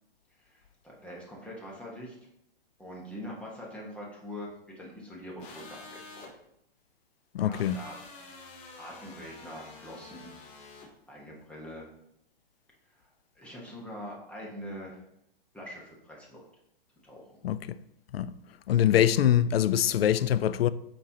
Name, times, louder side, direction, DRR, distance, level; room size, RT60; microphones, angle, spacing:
voice 1, 0.4-2.1 2.8-6.3 7.4-7.9 8.8-10.3 11.1-11.9 13.0-15.0 15.5-16.5 17.0-17.4, equal, 5° left, 1.1 m, -43 dB
sound 1, 5.4-6.3 7.5-10.9, left 3 dB, 25° left, 0.9 m, -48 dB
voice 2, 7.3-7.8 17.4-17.8 18.1-18.3 18.7-20.7, left 10 dB, 80° left, 0.4 m, -24 dB
7.8 x 4.4 x 2.8 m
hypercardioid pair, 140°, 30 cm